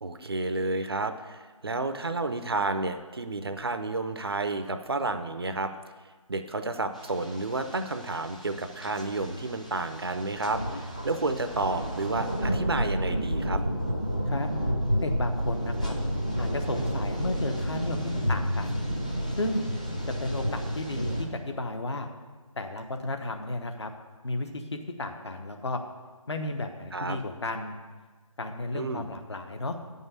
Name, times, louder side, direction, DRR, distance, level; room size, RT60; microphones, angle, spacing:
voice 1, 0.0-5.7 6.3-13.6 26.9-27.2 28.7-29.1, right 3 dB, 45° right, 9 dB, 0.6 m, -31 dB
sound 1, 6.9-21.2, equal, 10° left, 0.4 m, -31 dB
voice 2, 15.0-15.9 16.4-18.8 19.4-19.7 20.2-22.1 22.6-23.9 24.2-24.6 25.0-25.8 26.3-27.7 28.4-29.8, left 2 dB, 50° left, 5 dB, 1.0 m, -33 dB
9.0 x 5.5 x 8.1 m, 1.4 s
figure-of-eight pair, 160°, 18 cm